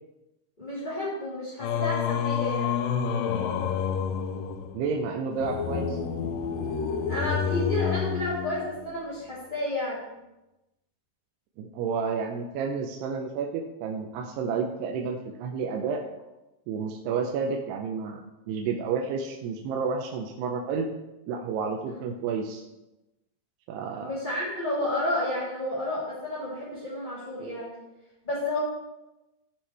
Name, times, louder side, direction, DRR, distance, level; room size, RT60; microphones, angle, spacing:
voice 1, 0.6-2.7 7.1-10.0 21.9-22.0 23.9-27.7 28.2-28.6, left 1 dB, 15° left, -11 dB, 2.5 m, -31 dB
Singing, 1.6-9.0, left 7 dB, 80° left, 2.1 m, -29 dB
voice 2, 4.7-6.0 11.6-16.0 16.7-20.9 21.3-22.6 23.7-24.1, right 5 dB, 90° right, 2 dB, 2.8 m, -30 dB
16.5 x 5.6 x 3.3 m, 0.99 s
omnidirectional pair, 4.8 m